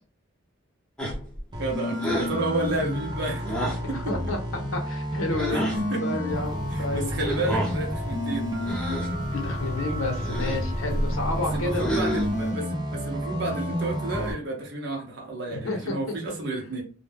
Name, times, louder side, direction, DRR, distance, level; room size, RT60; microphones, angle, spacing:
sound 1, 1.0-1.4 2.0-2.4 3.4-3.9 5.4-5.8 7.3-7.8 8.6-9.2 10.2-10.7 11.7-12.4, equal, 5° left, 0.8 m, -30 dB
sound 2, 1.5-14.3, equal, 20° right, 0.5 m, -31 dB
voice 1, 1.6-3.7 5.5-6.0 6.7-8.5 11.5-16.8, right 2 dB, 60° right, 0 dB, 0.7 m, -31 dB
voice 2, 3.8-4.4 4.7-5.6 6.0-7.3 9.3-11.9 15.5-16.0, left 2 dB, 85° left, 3 dB, 0.8 m, -30 dB
sound 3, 6.3-12.5, equal, 40° left, 0.6 m, -33 dB
2.2 x 2.0 x 3.2 m, 0.37 s
head